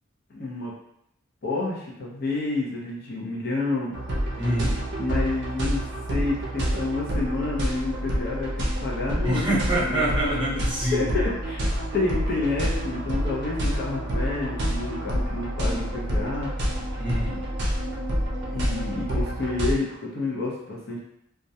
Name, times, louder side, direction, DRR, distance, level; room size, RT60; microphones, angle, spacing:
voice 1, 0.3-0.7 1.4-4.0 5.0-5.8 6.1-9.6 9.9-10.1 10.9-11.6 11.9-16.5 18.5-21.0, left 3 dB, 50° left, -4 dB, 0.6 m, -29 dB
sound 1, 3.9-19.7, equal, 55° right, 0.5 m, -28 dB
voice 2, 4.4-4.8 9.2-11.1 17.0-17.4, right 1 dB, 25° right, -8 dB, 0.8 m, -26 dB
2.3 x 2.1 x 2.7 m, 0.77 s
head